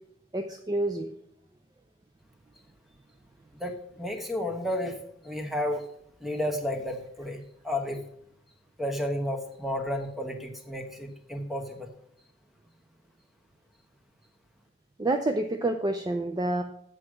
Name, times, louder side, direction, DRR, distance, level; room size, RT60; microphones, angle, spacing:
voice 1, 0.3-1.1 15.0-16.6, right 2 dB, 20° right, 6 dB, 0.4 m, -28 dB
voice 2, 3.6-5.8 6.2-8.0 8.8-11.9, left 1 dB, ahead, 4 dB, 1.0 m, -32 dB
7.8 x 6.3 x 6.1 m, 0.72 s
head